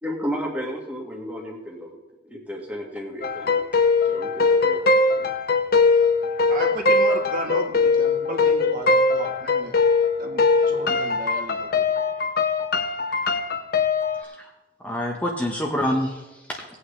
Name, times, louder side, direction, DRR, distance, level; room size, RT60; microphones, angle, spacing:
voice 1, 0.0-2.0 2.2-3.7 4.0-4.9 5.1-5.3, equal, 10° right, -1 dB, 1.8 m, -33 dB
sound 1, 3.2-14.2, left 3 dB, 55° left, 0.8 m, -21 dB
voice 2, 6.5-9.8 10.2-12.0, right 1 dB, 50° right, 1 dB, 1.6 m, -33 dB
voice 3, 14.2-14.5 14.8-16.8, left 1 dB, 10° left, 0 dB, 1.0 m, -27 dB
18.5 x 8.5 x 3.3 m, 1.0 s
head